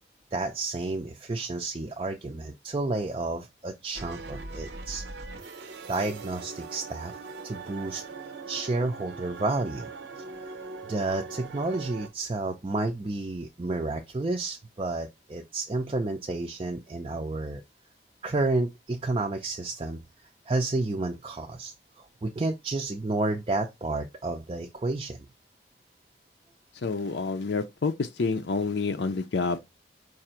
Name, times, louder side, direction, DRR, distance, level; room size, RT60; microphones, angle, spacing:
voice 1, 0.3-5.0 5.9-7.2 7.4-8.0 8.5-9.9 10.2-17.6 18.2-20.0 20.5-25.3, right 2 dB, 30° right, 0.4 m, -31 dB
sound 1, 3.9-12.1, right 4 dB, 85° right, 0.7 m, -41 dB
voice 2, 26.8-29.6, left 4 dB, 85° left, 0.5 m, -28 dB
4.8 x 2.6 x 4.3 m
head